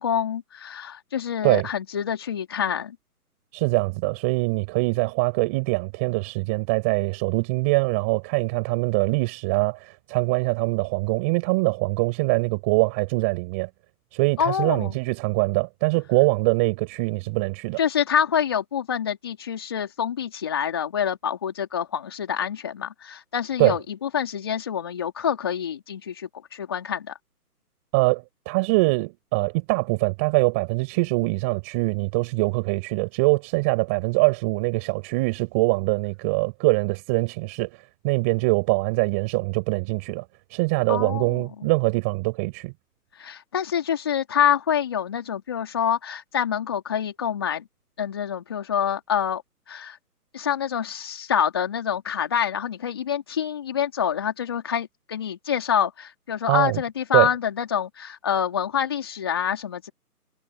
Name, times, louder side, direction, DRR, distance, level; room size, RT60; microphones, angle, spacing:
voice 1, 0.0-3.0 14.4-14.9 17.8-27.1 40.9-41.5 43.2-47.7 48.0-49.4 49.7-50.0 50.3-59.9, left 8 dB, 15° left, 3.6 m, -26 dB
voice 2, 3.5-13.7 14.1-17.8 23.6-23.8 27.9-40.2 40.5-42.7 56.5-56.8 57.1-57.3, right 26 dB, 10° right, 6.5 m, -23 dB
hypercardioid pair, 180°, 46 cm